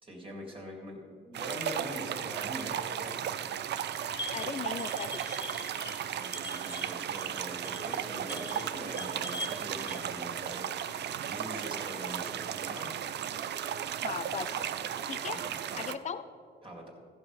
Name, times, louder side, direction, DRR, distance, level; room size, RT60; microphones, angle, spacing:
voice 1, 0.0-3.2 6.1-10.6 11.3-12.9 15.3-15.9 16.6-16.9, equal, 25° right, -1 dB, 2.1 m, -43 dB
sound 1, 1.3-15.9, right 9 dB, 60° right, 0.5 m, -35 dB
sound 2, 3.9-10.0, left 1 dB, 20° left, 1.1 m, -42 dB
voice 2, 4.3-5.4 14.0-14.6 15.1-15.4 15.7-16.2, left 7 dB, 35° left, 11 dB, 0.5 m, -37 dB
sound 3, 7.8-15.3, right 1 dB, 5° right, 1.8 m, -51 dB
14.5 x 5.3 x 5.8 m, 2.1 s
cardioid pair, 90°, 20 cm